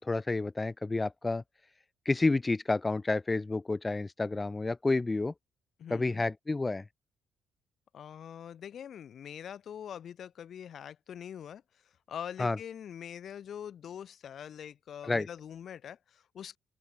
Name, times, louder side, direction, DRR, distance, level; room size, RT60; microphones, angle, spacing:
voice 1, 0.0-1.4 2.0-5.3 5.9-6.8 12.4-12.6 15.0-15.3, left 3 dB, 20° left, 4.9 m, -30 dB
voice 2, 5.8-6.2 7.9-11.6 12.1-16.6, left 9 dB, 60° left, 6.7 m, -43 dB
open air
cardioid pair, 90°, 0 cm